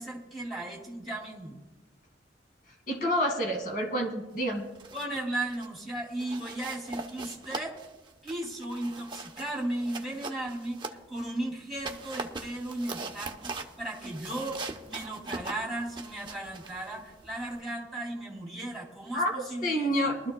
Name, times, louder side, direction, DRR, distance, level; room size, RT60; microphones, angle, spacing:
voice 1, 0.0-1.6 4.9-7.8 8.2-20.1, right 1 dB, ahead, -2 dB, 2.7 m, -36 dB
voice 2, 2.9-4.7 19.1-19.3 19.6-20.3, equal, 45° left, 2 dB, 2.1 m, -28 dB
sound 1, 4.6-5.2 5.5-5.8 6.2-11.3 11.7-17.6, right 3 dB, 25° right, 0.8 m, -41 dB
22.0 x 13.0 x 2.3 m, 1.1 s
head